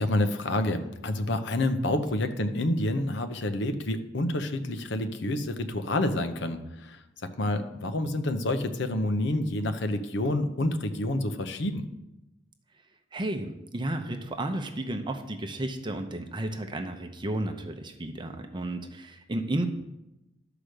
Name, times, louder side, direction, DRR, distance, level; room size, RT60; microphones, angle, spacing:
voice 1, 0.0-11.8, left 1 dB, 65° left, 8 dB, 0.8 m, -28 dB
voice 2, 13.1-19.7, right 1 dB, 25° right, 5 dB, 0.7 m, -32 dB
11.5 x 4.9 x 6.5 m, 0.94 s
head